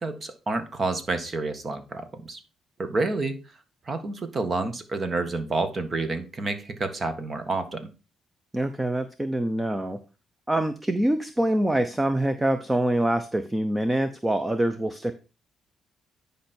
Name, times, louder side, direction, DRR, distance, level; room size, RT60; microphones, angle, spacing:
voice 1, 0.0-2.4 2.8-3.4 3.9-7.9, right 3 dB, 40° right, 8 dB, 1.6 m, -29 dB
voice 2, 8.5-10.0 10.5-15.1, right 1 dB, 15° right, 10 dB, 0.8 m, -25 dB
10.0 x 5.3 x 4.4 m, 0.31 s
cardioid pair, 90°, 0 cm